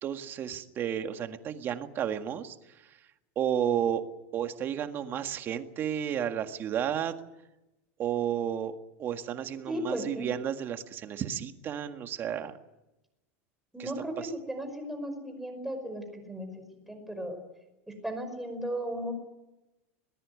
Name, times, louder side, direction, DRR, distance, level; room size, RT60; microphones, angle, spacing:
voice 1, 0.0-2.6 2.9-3.0 3.4-4.0 4.3-7.2 8.0-12.6 13.8-13.9 14.2-14.3, right 9 dB, 30° right, 7 dB, 1.7 m, -32 dB
voice 2, 9.7-10.3 13.7-17.4 18.0-19.1, right 1 dB, 5° right, 5 dB, 5.5 m, -36 dB
21.5 x 20.0 x 9.6 m, 0.98 s
supercardioid pair, 160°, 8 cm